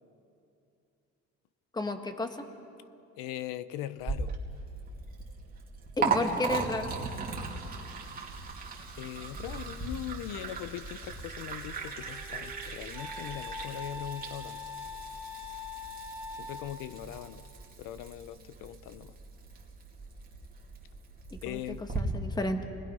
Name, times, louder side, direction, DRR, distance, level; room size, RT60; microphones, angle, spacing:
voice 1, 1.7-2.5 6.0-6.9 21.5-21.6 21.9-22.6, left 2 dB, 15° left, 6 dB, 1.3 m, -32 dB
voice 2, 3.2-4.3 9.0-14.6 16.3-17.5 17.8-19.1 21.4-21.8, left 12 dB, 90° left, 14 dB, 0.9 m, -40 dB
Liquid, 4.0-22.0, right 4 dB, 30° right, 2.6 m, -38 dB
Wind instrument woodwind instrument, 11.6-17.0, left 4 dB, 10° right, 1.6 m, -43 dB
30.0 x 20.5 x 5.5 m, 2.6 s
cardioid pair, 155°, 31 cm